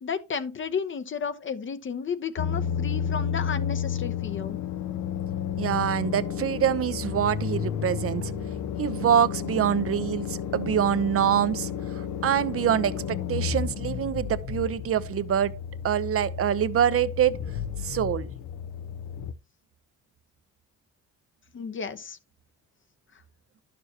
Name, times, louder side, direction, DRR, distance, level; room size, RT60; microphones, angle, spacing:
voice 1, 0.0-4.6 21.5-22.2, left 6 dB, 40° left, 0.8 m, -33 dB
sound 1, 2.4-19.3, left 8 dB, 70° left, 0.7 m, -32 dB
voice 2, 5.6-8.3 8.8-15.6 15.8-17.4 17.8-18.3, right 9 dB, 50° right, 0.7 m, -25 dB
11.0 x 6.8 x 2.8 m
cardioid pair, 90°, 30 cm